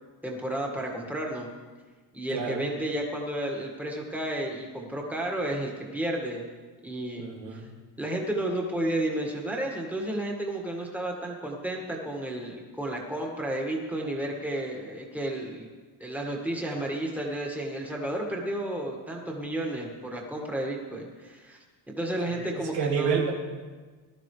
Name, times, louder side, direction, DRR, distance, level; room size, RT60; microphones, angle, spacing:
voice 1, 0.2-1.5 2.1-6.5 6.8-7.7 8.0-15.7 16.0-21.6 21.9-23.2, right 1 dB, 5° right, -1 dB, 1.8 m, -32 dB
voice 2, 2.3-2.7 7.2-7.7 16.8-16.9 22.3-23.3, right 7 dB, 85° right, 0 dB, 2.5 m, -30 dB
19.0 x 13.0 x 3.3 m, 1.3 s
cardioid pair, 155°, 42 cm